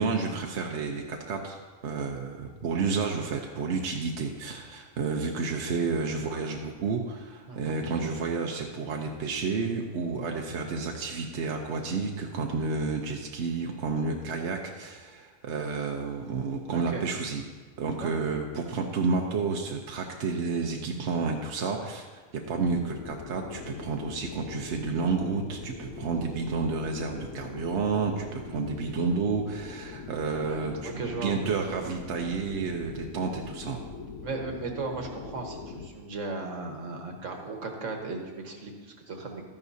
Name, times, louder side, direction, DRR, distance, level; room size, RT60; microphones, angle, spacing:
voice 1, 0.0-1.6 1.8-17.4 17.8-33.8, right 4 dB, 65° right, 1 dB, 1.1 m, -30 dB
voice 2, 16.7-17.0 18.0-18.2 30.4-31.3 34.2-39.4, right 3 dB, 80° right, 2 dB, 1.6 m, -36 dB
sound 1, 22.4-35.9, left 5 dB, 70° left, 1.1 m, -42 dB
13.0 x 11.0 x 2.7 m, 1.4 s
omnidirectional pair, 1.3 m